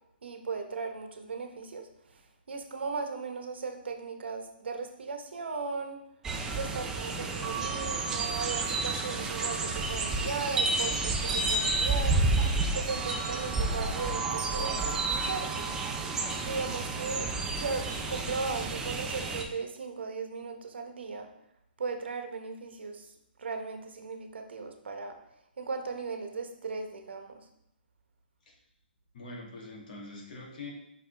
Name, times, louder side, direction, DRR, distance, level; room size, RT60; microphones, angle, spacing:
voice 1, 0.2-2.2 2.5-6.0 6.5-12.2 12.7-15.7 16.4-17.3 17.6-21.3 21.8-23.1 23.4-25.1 25.6-27.4, right 4 dB, 80° right, 5 dB, 1.2 m, -37 dB
sound 1, 6.2-19.4, right 3 dB, 10° right, 0.5 m, -30 dB
voice 2, 17.1-17.6 29.1-30.7, left 3 dB, 50° left, -2 dB, 2.1 m, -44 dB
5.7 x 5.1 x 3.4 m, 0.77 s
hypercardioid pair, 160°, 6 cm